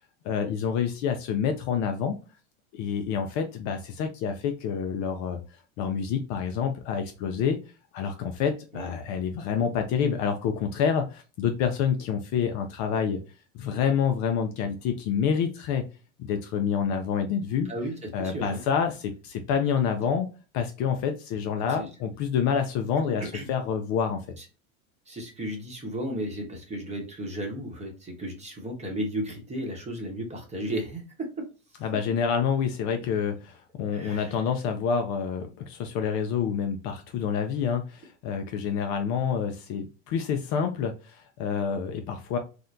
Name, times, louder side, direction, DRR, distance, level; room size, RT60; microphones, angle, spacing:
voice 1, 0.2-2.2 2.7-5.4 5.8-7.6 7.9-13.2 13.5-15.8 16.2-17.7 18.1-20.3 20.5-24.2 31.8-42.4, left 7 dB, 45° left, 6 dB, 0.5 m, -28 dB
voice 2, 18.2-18.6 21.7-21.9 23.2-23.5 24.4-24.5 25.1-31.5 33.9-34.4, right 1 dB, 15° right, 2 dB, 0.9 m, -34 dB
3.4 x 2.1 x 2.5 m, 0.33 s
supercardioid pair, 115°, 41 cm